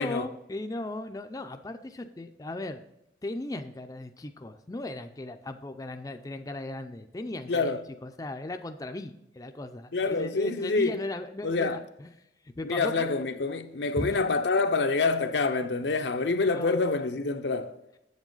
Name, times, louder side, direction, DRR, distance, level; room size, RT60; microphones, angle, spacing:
voice 1, 0.0-2.8 3.2-12.1 12.4-13.1 14.0-14.2 15.9-16.0 16.5-16.8, left 2 dB, 20° left, 0.4 m, -37 dB
voice 2, 7.5-7.8 9.9-11.0 11.4-11.8 12.6-17.7, left 3 dB, 80° left, 0.7 m, -27 dB
7.8 x 7.3 x 3.9 m
head